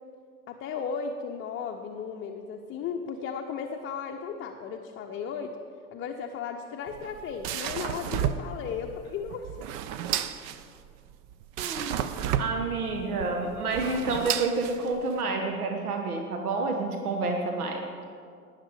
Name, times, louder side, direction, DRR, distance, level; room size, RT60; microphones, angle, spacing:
voice 1, 0.5-5.6 5.9-9.5, left 6 dB, 25° left, 2 dB, 0.7 m, -35 dB
sound 1, 6.9-15.2, right 10 dB, 40° right, 0.6 m, -33 dB
voice 2, 11.6-18.1, right 3 dB, 75° right, 3 dB, 1.2 m, -29 dB
18.5 x 6.7 x 4.8 m, 2.3 s
figure-of-eight pair, 85°, 44 cm